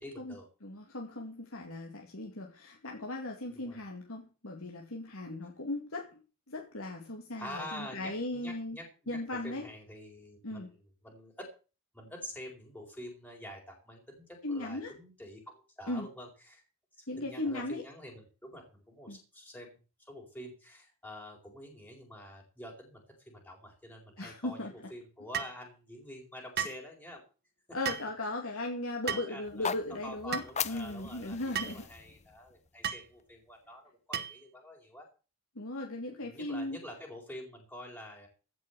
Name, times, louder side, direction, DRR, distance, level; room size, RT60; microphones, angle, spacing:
voice 1, 0.0-0.5 3.5-3.8 7.4-11.5 11.9-16.6 17.0-27.2 28.2-28.6 29.0-29.7 30.0-33.8 34.1-35.1 36.2-38.3, equal, 5° left, -1 dB, 4.3 m, -47 dB
voice 2, 0.6-6.2 6.5-8.8 9.1-9.6 10.4-10.7 14.4-14.9 15.9-16.1 17.1-17.8 19.1-19.2 24.2-24.7 27.7-31.9 35.6-36.8, left 2 dB, 70° left, 1 dB, 2.3 m, -37 dB
sound 1, 25.3-25.6 26.6-26.8 27.8-28.1 29.1-29.3 30.3-30.5 31.5-31.8 32.8-33.1 34.1-34.4, right 8 dB, 45° right, 1.0 m, -34 dB
sound 2, 29.4-33.6, left 7 dB, 30° left, 0.6 m, -40 dB
15.5 x 6.4 x 7.8 m, 0.35 s
head